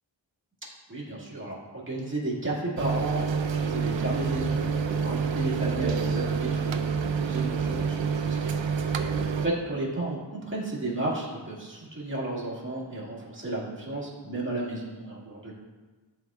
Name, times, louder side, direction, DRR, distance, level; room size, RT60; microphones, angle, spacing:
voice 1, 0.9-3.3 3.6-6.8 7.2-8.7 9.0-9.1 9.7-15.5, right 2 dB, 25° right, -6 dB, 2.0 m, -33 dB
sound 1, 2.8-9.5, right 6 dB, 75° right, 0.5 m, -28 dB
sound 2, 3.2-4.0 4.2-5.2 5.6-8.4 8.7-9.7, right 2 dB, 55° right, 1.6 m, -39 dB
11.0 x 4.3 x 2.4 m, 1.3 s
wide cardioid pair, 90°, 46 cm